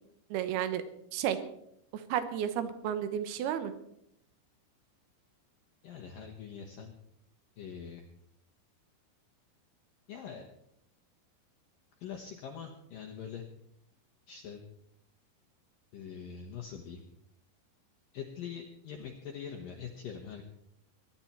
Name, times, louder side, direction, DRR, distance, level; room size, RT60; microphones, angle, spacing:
voice 1, 0.3-0.8 1.1-1.4 1.9-3.7, right 10 dB, 75° right, 11 dB, 2.5 m, -32 dB
voice 2, 5.8-6.9 7.6-8.0 10.1-10.5 12.0-13.4 14.3-14.6 15.9-17.0 18.1-20.4, left 7 dB, 70° left, 2 dB, 2.3 m, -43 dB
23.5 x 10.5 x 4.4 m, 0.74 s
omnidirectional pair, 5.5 m